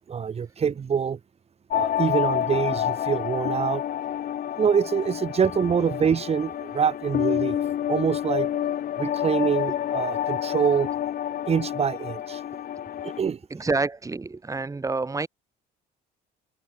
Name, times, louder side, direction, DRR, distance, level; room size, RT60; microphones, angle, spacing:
voice 1, 0.1-1.2 1.7-3.8 4.6-7.6 7.9-8.5 9.0-10.9 11.5-12.4 13.0-13.4, right 7 dB, 35° right, 3.3 m, -25 dB
sound 1, 1.7-13.2, left 10 dB, 55° left, 2.7 m, -28 dB
voice 2, 13.5-15.3, right 3 dB, 20° right, 4.7 m, -28 dB
cardioid pair, 110°, 17 cm